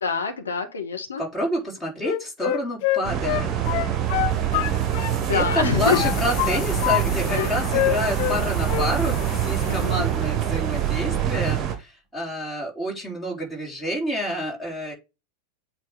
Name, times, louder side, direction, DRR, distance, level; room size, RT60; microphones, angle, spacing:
voice 1, 0.0-1.2 4.6-6.1 7.3-7.7 9.7-10.0, left 5 dB, 70° left, 1.5 m, -27 dB
voice 2, 1.2-3.5 4.5-4.8 5.3-14.9, equal, 10° left, 3.7 m, -28 dB
Wind instrument woodwind instrument, 2.0-5.2 5.4-7.0 7.3-8.4 8.6-8.9, left 16 dB, 45° left, 0.6 m, -25 dB
sound 1, 3.0-11.8, right 9 dB, 30° right, 1.4 m, -25 dB
sound 2, 5.8-10.6, left 5 dB, 25° left, 1.8 m, -36 dB
8.4 x 3.6 x 4.9 m
figure-of-eight pair, 90°, 0 cm